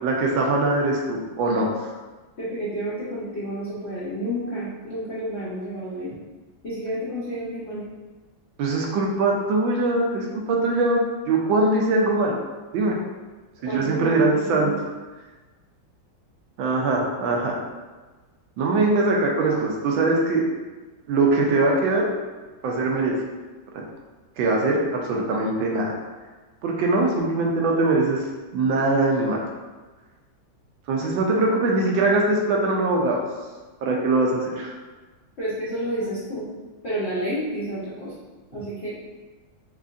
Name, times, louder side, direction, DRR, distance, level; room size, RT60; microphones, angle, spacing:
voice 1, 0.0-1.7 8.6-12.4 12.7-13.0 13.6-14.7 16.6-17.6 18.6-20.4 21.1-22.1 22.6-23.1 24.4-25.9 26.6-28.2 28.5-29.4 30.9-33.2 33.8-34.7, right 2 dB, 80° right, -1 dB, 1.3 m, -22 dB
voice 2, 2.4-6.1 6.6-7.9 13.7-14.8 35.4-36.5 36.8-38.1 38.5-39.0, right 1 dB, 60° left, -10 dB, 0.7 m, -30 dB
4.6 x 2.4 x 2.5 m, 1.3 s
omnidirectional pair, 2.2 m